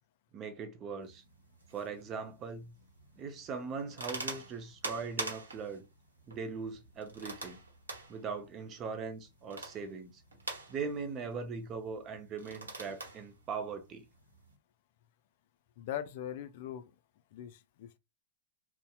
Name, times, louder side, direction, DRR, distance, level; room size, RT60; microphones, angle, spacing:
voice 1, 0.3-1.2 1.7-2.7 3.2-5.9 6.3-7.6 8.1-10.2 10.7-14.0, right 5 dB, 30° right, 0.6 m, -40 dB
sound 1, 1.0-14.6, right 3 dB, 80° right, 0.9 m, -46 dB
voice 2, 15.8-16.9 17.3-18.0, left 10 dB, 55° left, 0.3 m, -41 dB
2.7 x 2.1 x 2.3 m
figure-of-eight pair, 100°, 0 cm